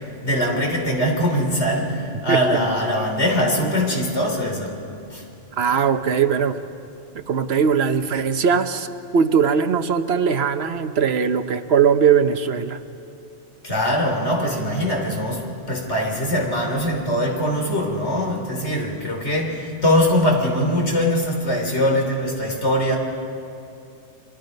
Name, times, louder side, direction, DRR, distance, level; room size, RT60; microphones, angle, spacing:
voice 1, 0.0-4.8 5.1-5.3 13.6-23.0, equal, 70° left, 1 dB, 3.8 m, -22 dB
voice 2, 5.6-6.6 7.1-8.9 9.1-12.8, right 7 dB, 65° right, 10 dB, 1.1 m, -20 dB
29.5 x 24.0 x 5.4 m, 2.6 s
omnidirectional pair, 1.2 m